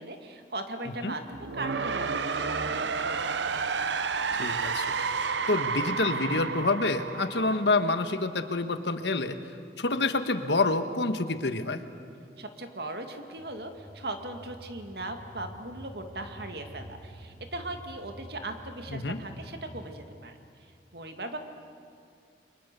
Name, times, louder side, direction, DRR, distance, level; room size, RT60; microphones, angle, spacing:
voice 1, 0.0-2.8 12.4-21.4, right 2 dB, 65° right, 6 dB, 2.1 m, -39 dB
sound 1, 1.3-8.2, right 5 dB, 90° right, 0.9 m, -31 dB
voice 2, 4.4-4.9 5.5-9.4 9.8-11.8 18.9-19.2, left 3 dB, 80° left, 9 dB, 1.4 m, -27 dB
sound 2, 13.4-19.9, equal, 35° right, 2.6 m, -48 dB
29.0 x 23.5 x 6.9 m, 2.3 s
head